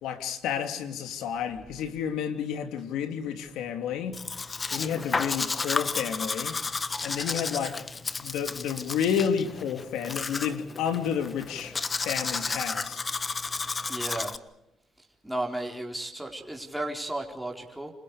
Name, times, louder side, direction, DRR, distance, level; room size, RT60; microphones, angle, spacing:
voice 1, 0.0-4.2 4.7-6.6 7.0-7.8 8.2-11.8 12.0-13.0, left 8 dB, 90° left, 7 dB, 3.0 m, -30 dB
Domestic sounds home sounds, 4.1-14.4, left 4 dB, 30° left, 1.2 m, -32 dB
voice 2, 13.9-14.3 15.2-17.9, right 1 dB, 5° right, 0 dB, 4.6 m, -34 dB
29.0 x 27.5 x 5.1 m, 0.85 s
cardioid pair, 90°, 0 cm